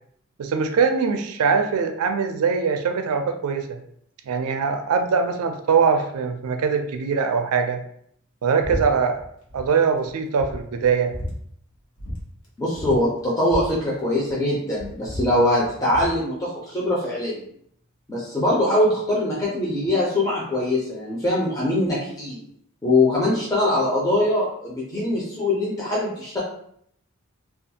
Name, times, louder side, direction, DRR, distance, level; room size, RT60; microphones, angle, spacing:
voice 1, 0.4-3.8 4.3-7.8 8.4-9.3 9.5-11.1, right 5 dB, 85° right, 6 dB, 0.4 m, -22 dB
sound 1, 8.6-8.9 9.1-9.7 10.0-10.1 10.4-11.4 12.0-12.2 12.4-12.5 12.7-14.4 14.7-16.2, equal, 85° left, 0.8 m, -33 dB
voice 2, 12.6-17.4 18.1-22.4 22.8-26.4, left 1 dB, 15° left, -6 dB, 0.5 m, -22 dB
2.5 x 2.3 x 2.7 m, 0.67 s
head